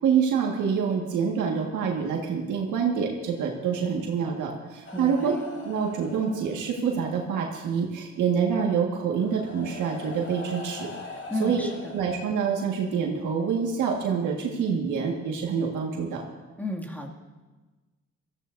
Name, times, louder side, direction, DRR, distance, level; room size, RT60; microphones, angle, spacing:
voice 1, 0.0-5.3 5.6-10.9 11.4-11.7 11.9-16.2, right 6 dB, 80° right, -1 dB, 1.8 m, -26 dB
sound 1, 4.8-7.0 8.3-8.4 9.1-12.8 13.8-14.0, left 3 dB, 40° left, 2.4 m, -42 dB
voice 2, 4.9-5.3 11.3-11.9 16.6-17.1, left 1 dB, 5° left, -1 dB, 2.3 m, -33 dB
22.0 x 14.5 x 2.7 m, 1.3 s
cardioid pair, 90°, 30 cm